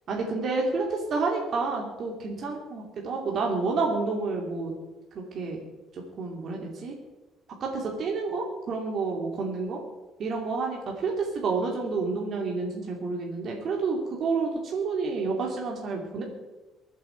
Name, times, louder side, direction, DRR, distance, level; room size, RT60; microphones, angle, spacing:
voice 1, 0.1-4.7 5.1-5.6 5.9-6.9 7.6-9.8 10.2-16.2, right 4 dB, 55° right, 0 dB, 2.8 m, -29 dB
23.5 x 8.3 x 4.6 m, 1.2 s
cardioid pair, 115°, 0 cm